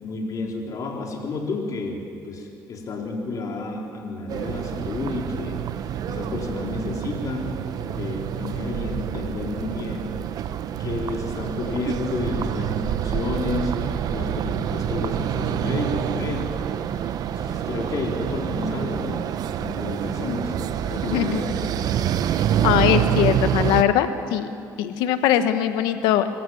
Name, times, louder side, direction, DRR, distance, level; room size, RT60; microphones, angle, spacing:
voice 1, 0.0-5.6 6.1-10.2 10.8-16.6 17.0-19.2 19.6-21.8, left 3 dB, 55° left, 0 dB, 4.1 m, -31 dB
sound 1, 4.3-23.8, right 10 dB, 65° right, 0.8 m, -27 dB
voice 2, 21.1-21.4 22.6-26.3, left 11 dB, 85° left, 10 dB, 1.2 m, -21 dB
25.0 x 14.5 x 7.8 m, 2.4 s
supercardioid pair, 85°, 7 cm